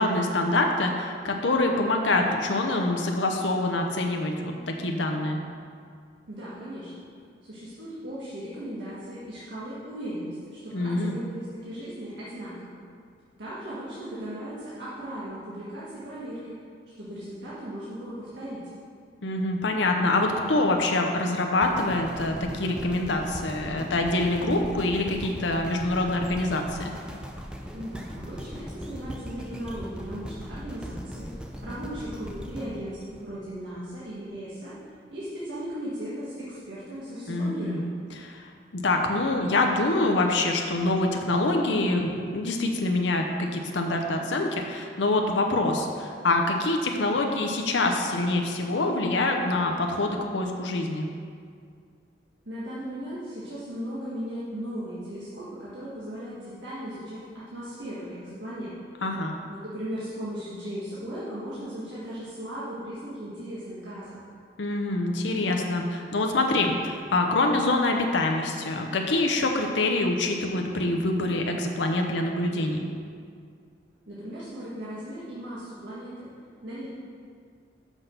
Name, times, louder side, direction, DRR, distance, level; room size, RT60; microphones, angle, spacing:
voice 1, 0.0-5.4 10.7-11.1 19.2-26.9 37.3-37.8 38.1-51.0 59.0-59.4 64.6-72.8, left 2 dB, 85° left, 3 dB, 0.7 m, -25 dB
voice 2, 6.3-6.9 7.4-12.8 13.4-16.6 17.0-18.7 27.7-31.3 31.6-34.7 35.1-37.8 52.4-58.7 59.5-64.2 74.1-76.3 76.6-76.9, equal, 85° right, -9 dB, 1.6 m, -37 dB
sound 1, 21.6-33.8 34.4-34.5, equal, 5° right, 0.5 m, -39 dB
6.2 x 5.8 x 6.7 m, 2.2 s
head